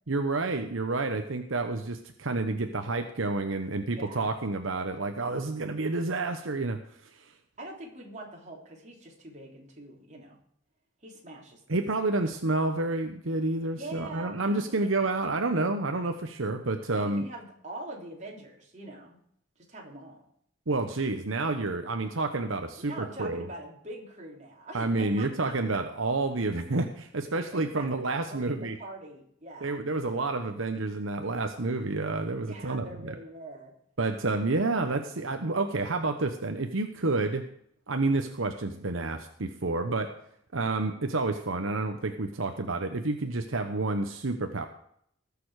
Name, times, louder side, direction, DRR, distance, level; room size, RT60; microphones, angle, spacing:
voice 1, 0.1-6.8 11.7-17.2 20.7-23.5 24.7-28.8 29.6-33.1 34.0-37.4 37.9-40.1 40.5-44.7, right 3 dB, 80° right, 6 dB, 1.0 m, -29 dB
voice 2, 3.9-4.3 7.6-10.4 11.0-11.8 13.7-14.9 16.9-19.2 19.7-20.2 22.8-25.5 27.5-29.8 32.4-33.7 34.2-34.3, right 2 dB, 35° right, -1 dB, 3.4 m, -43 dB
19.5 x 7.0 x 4.9 m, 0.68 s
head